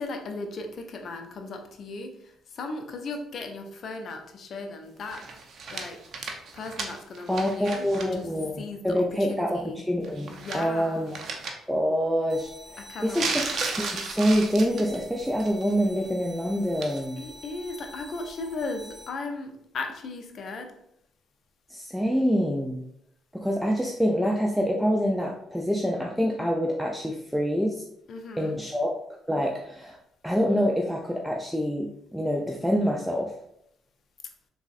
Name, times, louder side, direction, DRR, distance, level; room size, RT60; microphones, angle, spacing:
voice 1, 0.0-5.3 5.7-6.0 6.5-8.3 8.6-9.8 10.3-11.1 12.8-13.3 17.2-20.7 28.1-28.6, left 3 dB, 60° left, 4 dB, 0.5 m, -37 dB
sound 1, 5.1-8.1 8.4-8.5 10.0-10.8 11.1-11.5 13.1-15.0 15.4-15.7 16.8-17.0, right 4 dB, 60° right, 0.4 m, -34 dB
voice 2, 7.3-11.2 11.7-17.2 21.7-22.8 23.3-27.8 28.4-28.9 29.3-30.0 30.2-33.3, equal, ahead, -1 dB, 0.4 m, -26 dB
sound 2, 12.3-19.1, left 1 dB, 15° right, 0.8 m, -48 dB
3.3 x 2.0 x 2.4 m, 0.75 s
hypercardioid pair, 55°, 0 cm